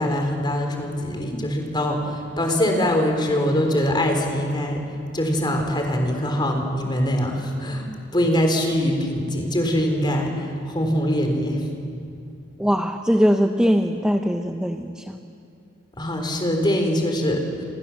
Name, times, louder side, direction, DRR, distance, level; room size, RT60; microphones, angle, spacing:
voice 1, 0.0-4.8 5.1-7.9 8.1-11.6 16.0-17.4, equal, 25° left, 3 dB, 3.8 m, -23 dB
voice 2, 12.6-15.2, equal, 5° right, 4 dB, 0.9 m, -21 dB
27.5 x 26.5 x 7.3 m, 2.4 s
head